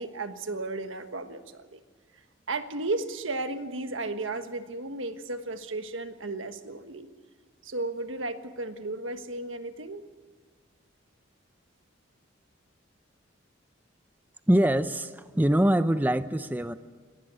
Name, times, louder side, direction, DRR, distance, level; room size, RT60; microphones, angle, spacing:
voice 1, 0.0-1.8 2.5-7.1 7.6-10.0, right 2 dB, 85° right, 8 dB, 1.4 m, -34 dB
voice 2, 14.5-16.8, right 1 dB, 10° right, 11 dB, 0.5 m, -24 dB
19.0 x 19.0 x 8.2 m, 1.5 s
head